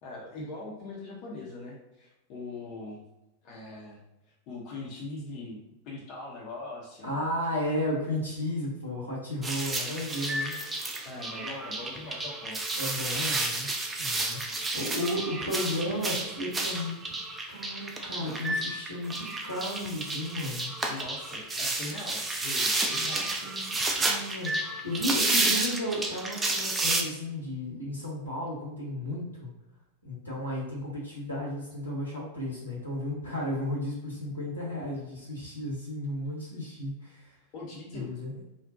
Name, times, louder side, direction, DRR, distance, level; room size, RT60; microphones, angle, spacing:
voice 1, 0.0-3.0 3.4-4.0 4.5-7.1 11.0-12.6 14.5-14.6 20.8-23.3 37.5-38.1, left 2 dB, 40° left, -3 dB, 0.5 m, -41 dB
voice 2, 7.0-10.6 12.7-13.7 14.0-17.0 17.5-20.7 22.9-29.5 30.0-37.4 37.9-38.4, left 1 dB, 85° left, -5 dB, 0.9 m, -34 dB
sound 1, 9.4-27.0, right 2 dB, 15° right, 0.3 m, -31 dB
2.5 x 2.1 x 2.4 m, 0.94 s
figure-of-eight pair, 90°, 0 cm